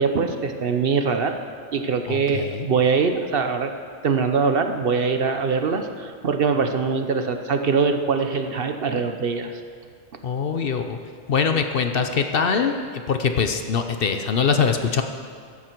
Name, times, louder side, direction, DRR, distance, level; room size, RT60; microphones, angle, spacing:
voice 1, 0.0-1.4 1.7-3.7 4.0-9.6, right 5 dB, 55° right, 6 dB, 0.9 m, -23 dB
voice 2, 2.1-2.7 10.2-11.0 11.3-15.0, left 6 dB, 55° left, 6 dB, 0.9 m, -23 dB
15.0 x 11.0 x 4.5 m, 2.1 s
omnidirectional pair, 1.2 m